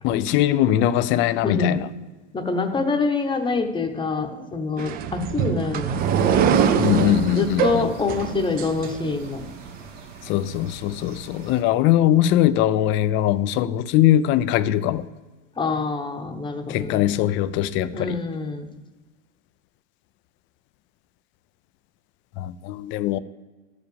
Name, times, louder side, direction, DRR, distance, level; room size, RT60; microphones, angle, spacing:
voice 1, 0.0-1.9 6.8-7.9 10.2-15.1 16.7-18.2 22.4-23.2, left 12 dB, 35° left, 0.4 m, -21 dB
voice 2, 1.4-1.8 2.3-6.0 7.3-9.4 15.6-17.1 17.9-18.7, left 4 dB, 15° left, 0.9 m, -26 dB
sound 1, 4.8-9.5, right 7 dB, 25° right, 0.5 m, -23 dB
sound 2, 6.0-11.6, right 4 dB, 85° right, 2.0 m, -43 dB
12.5 x 4.9 x 6.9 m
supercardioid pair, 130°, 37 cm